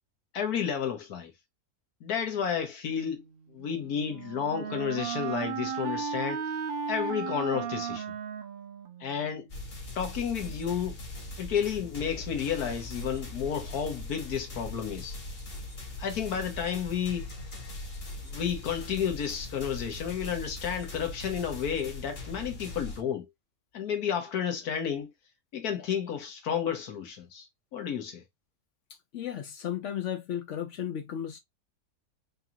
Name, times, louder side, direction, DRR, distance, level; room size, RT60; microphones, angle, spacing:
voice 1, 0.3-1.3 2.0-3.2 3.5-6.4 6.9-8.0 9.0-9.5 9.9-11.0 11.4-15.1 16.0-17.3 18.2-23.3 23.7-25.1 25.5-27.5 27.7-28.2, left 8 dB, 80° left, 1.6 m, -31 dB
Wind instrument woodwind instrument, 3.6-9.4, right 7 dB, 55° right, 0.7 m, -35 dB
sound 1, 9.5-23.0, left 2 dB, 40° left, 1.4 m, -40 dB
voice 2, 29.1-31.4, left 10 dB, 65° left, 0.8 m, -34 dB
4.8 x 2.5 x 2.7 m
omnidirectional pair, 1.6 m